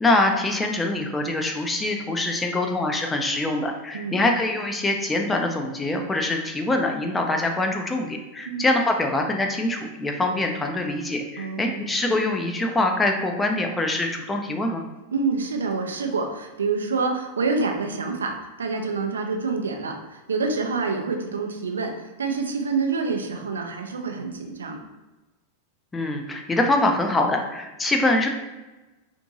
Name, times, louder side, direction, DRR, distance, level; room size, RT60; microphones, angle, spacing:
voice 1, 0.0-14.8 25.9-28.3, left 2 dB, 10° left, 3 dB, 0.4 m, -24 dB
voice 2, 3.9-4.2 8.5-8.6 11.4-11.9 15.1-24.8, right 4 dB, 70° right, 3 dB, 0.4 m, -27 dB
2.6 x 2.5 x 2.8 m, 1.1 s
figure-of-eight pair, 90°, 0 cm